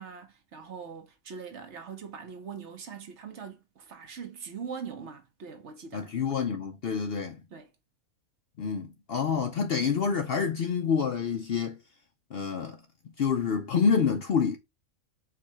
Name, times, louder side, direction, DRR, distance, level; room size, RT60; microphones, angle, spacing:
voice 1, 0.0-6.1 7.5-7.7, right 6 dB, 60° right, 1.1 m, -42 dB
voice 2, 5.9-7.4 8.6-11.8 12.3-12.8 13.2-14.6, left 6 dB, 55° left, 0.7 m, -27 dB
4.7 x 2.3 x 4.4 m
omnidirectional pair, 1.4 m